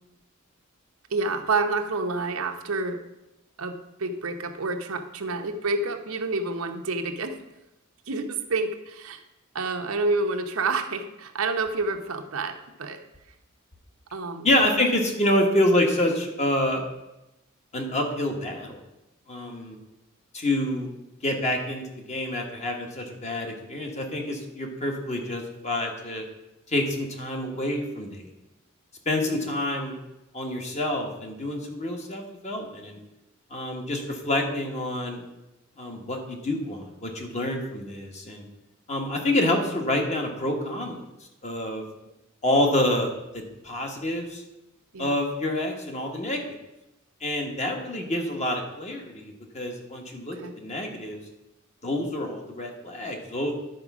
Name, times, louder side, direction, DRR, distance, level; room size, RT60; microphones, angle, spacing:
voice 1, 1.1-3.0 3.6-7.4 8.1-9.2 9.5-13.0 14.1-14.5 29.2-29.5 44.9-45.1 48.1-48.2 50.3-50.6, right 3 dB, 80° right, 5 dB, 0.9 m, -29 dB
voice 2, 14.4-16.8 17.7-18.8 19.3-19.8 20.3-20.9 21.2-26.2 26.7-28.2 29.0-29.9 30.3-33.0 33.5-35.2 35.8-38.4 38.9-41.0 41.4-41.8 42.4-44.4 45.0-46.4 47.2-51.2 51.8-53.5, left 1 dB, 35° left, 2 dB, 1.4 m, -27 dB
11.0 x 4.5 x 6.1 m, 0.95 s
head